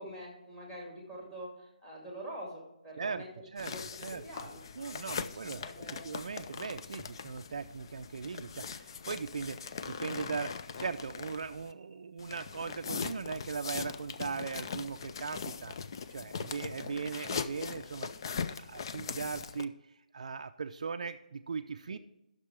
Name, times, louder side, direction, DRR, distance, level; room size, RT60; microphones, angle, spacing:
voice 1, 0.0-3.3 3.6-3.8 4.2-4.6 5.3-6.1 16.3-16.7 21.9-22.0, right 1 dB, 10° left, -2 dB, 2.2 m, -45 dB
sound 1, 3.6-11.7 12.2-19.6, left 6 dB, 35° left, 0.4 m, -41 dB
voice 2, 4.8-5.6 6.0-15.7 16.1-18.1 18.5-22.0, right 5 dB, 55° right, 8 dB, 0.4 m, -39 dB
10.0 x 6.7 x 4.7 m, 0.88 s
hypercardioid pair, 165°, 4 cm